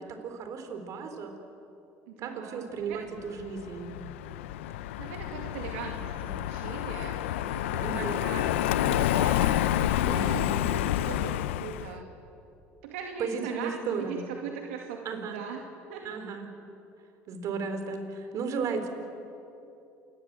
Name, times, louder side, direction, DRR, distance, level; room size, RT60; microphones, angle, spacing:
voice 1, 0.0-1.3 2.2-3.9 7.8-8.2 10.1-10.5 13.2-14.2 15.0-15.4 16.0-16.5 17.3-18.9, right 5 dB, 55° right, 7 dB, 4.2 m, -34 dB
voice 2, 2.1-3.0 5.0-12.1 12.8-15.6 15.9-16.2, right 7 dB, 85° right, 2 dB, 2.2 m, -40 dB
Car passing by, 3.4-11.9, left 13 dB, 85° left, 0.7 m, -29 dB
28.0 x 22.0 x 7.8 m, 2.8 s
hypercardioid pair, 80°, 6 cm